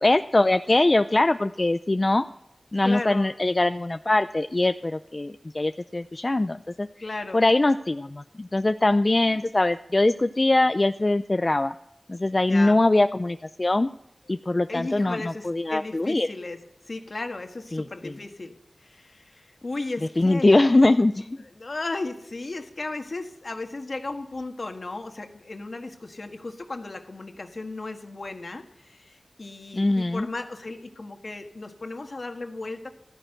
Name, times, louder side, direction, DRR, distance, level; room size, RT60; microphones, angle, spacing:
voice 1, 0.0-2.2 2.7-6.9 7.3-11.7 12.1-13.9 14.3-16.3 17.7-18.1 20.2-21.4 29.7-30.3, left 2 dB, 45° left, 10 dB, 0.5 m, -22 dB
voice 2, 2.8-3.3 7.0-7.4 12.5-12.8 14.7-16.6 16.9-18.5 18.8-20.7 21.5-32.9, left 2 dB, 70° left, 5 dB, 1.6 m, -35 dB
14.0 x 10.5 x 7.9 m, 0.78 s
wide cardioid pair, 40°, 0 cm